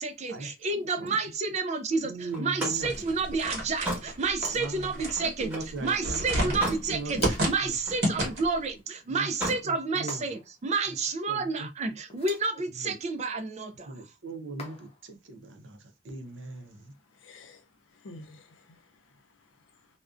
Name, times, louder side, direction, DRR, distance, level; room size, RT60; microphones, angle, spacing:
voice 1, 0.0-5.5 5.8-13.9, right 4 dB, 35° right, 0.3 m, -30 dB
voice 2, 0.8-1.2 2.0-3.1 4.5-4.9 5.2-7.8 9.1-9.3 9.6-10.3 11.3-12.0 12.7-13.0 13.9-16.9, right 2 dB, 85° right, 0.6 m, -40 dB
Slam, 2.3-5.8 6.2-6.9 7.3-8.4 9.2-9.7, equal, 10° right, 1.0 m, -36 dB
sound 1, 2.5-3.0 4.4-4.9 7.1-7.7 10.1-10.6 12.0-12.6 14.6-15.1, left 3 dB, 35° left, 0.6 m, -44 dB
sound 2, 2.8-8.6, right 1 dB, 55° right, 1.1 m, -31 dB
voice 3, 16.8-19.9, left 2 dB, 85° left, 0.5 m, -52 dB
2.4 x 2.1 x 2.4 m
head